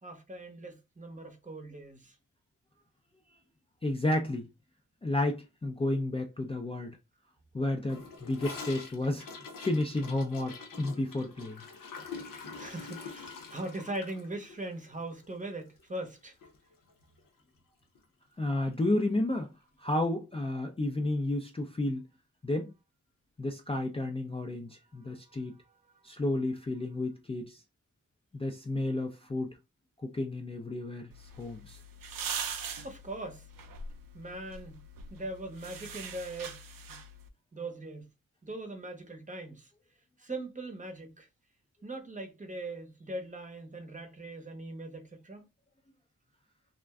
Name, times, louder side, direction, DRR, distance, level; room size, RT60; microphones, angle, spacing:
voice 1, 0.0-2.1 12.6-16.3 26.1-26.2 32.8-33.4 34.1-34.8 35.1-36.6 36.9-37.0 37.5-38.1 38.4-39.7 40.2-41.3 41.8-45.4, right 2 dB, 25° right, 0.7 m, -40 dB
voice 2, 3.8-4.4 5.0-6.9 7.5-9.3 9.6-11.6 18.4-19.5 19.8-22.1 22.4-22.7 23.4-25.5 26.0-27.6 28.3-29.6 30.0-31.1 31.4-31.8, left 2 dB, 20° left, 0.4 m, -31 dB
Gurgling / Toilet flush, 7.9-16.2 16.4-16.6 16.8-17.3 17.6-17.7 17.9-18.0 19.0-19.1, left 4 dB, 80° left, 0.7 m, -45 dB
sound 1, 31.1-37.3, right 5 dB, 85° right, 0.5 m, -42 dB
2.4 x 2.1 x 3.4 m
wide cardioid pair, 90°, 33 cm